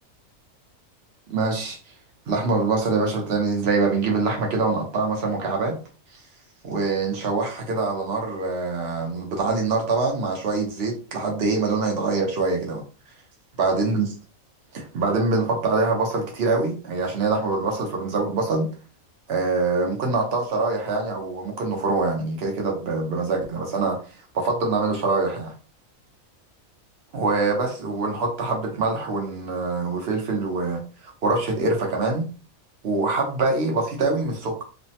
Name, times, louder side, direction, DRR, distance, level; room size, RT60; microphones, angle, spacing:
voice 1, 1.3-1.8 2.3-5.7 6.6-12.8 13.6-14.2 14.7-18.7 19.3-24.0 24.3-25.5 27.1-32.2 32.8-34.6, right 3 dB, 50° right, 1 dB, 0.9 m, -24 dB
3.2 x 2.1 x 2.7 m, 0.38 s
omnidirectional pair, 1.5 m